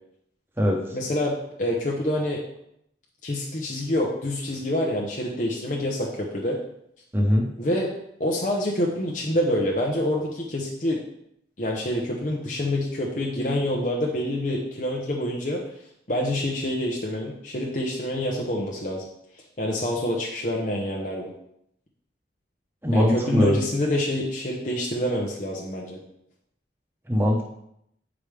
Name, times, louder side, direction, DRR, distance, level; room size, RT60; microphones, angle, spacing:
voice 1, 0.9-2.4 3.2-6.6 7.6-7.9 8.2-11.0 11.6-15.6 16.1-19.0 19.6-21.3 22.9-26.0, left 1 dB, 45° left, -2 dB, 0.9 m, -27 dB
voice 2, 7.1-7.5 22.8-23.5 27.1-27.4, equal, 15° right, -1 dB, 1.0 m, -20 dB
8.8 x 5.0 x 3.4 m, 0.76 s
head